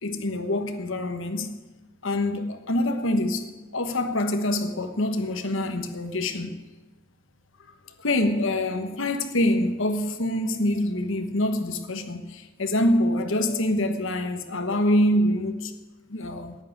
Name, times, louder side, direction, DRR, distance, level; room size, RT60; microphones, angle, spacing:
voice 1, 0.0-1.5 2.0-6.6 8.0-15.7 16.1-16.6, left 1 dB, 60° left, 1.3 m, -25 dB
10.5 x 9.6 x 9.9 m
head